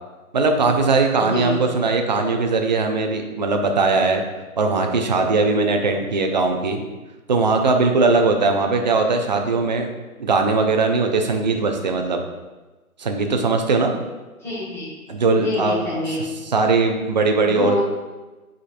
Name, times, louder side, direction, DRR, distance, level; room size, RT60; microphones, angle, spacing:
voice 1, 0.3-4.2 4.6-6.8 7.3-9.9 10.2-12.2 13.0-13.9 15.1-15.8 16.5-17.8, right 3 dB, 35° right, 4 dB, 0.4 m, -19 dB
voice 2, 1.2-1.7 14.4-15.0 15.4-16.2 17.4-17.8, left 2 dB, 5° left, -8 dB, 1.2 m, -27 dB
7.9 x 5.0 x 2.5 m, 1.2 s
figure-of-eight pair, 140°, 45 cm